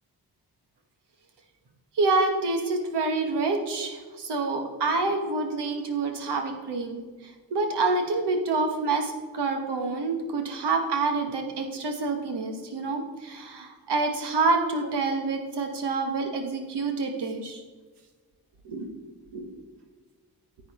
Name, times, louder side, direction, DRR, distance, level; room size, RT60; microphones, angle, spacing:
voice 1, 2.0-7.1 7.5-17.6 18.6-18.9 19.3-19.5, right 3 dB, 90° right, 4 dB, 1.2 m, -27 dB
10.0 x 7.5 x 4.2 m, 1.4 s
cardioid pair, 40°, 40 cm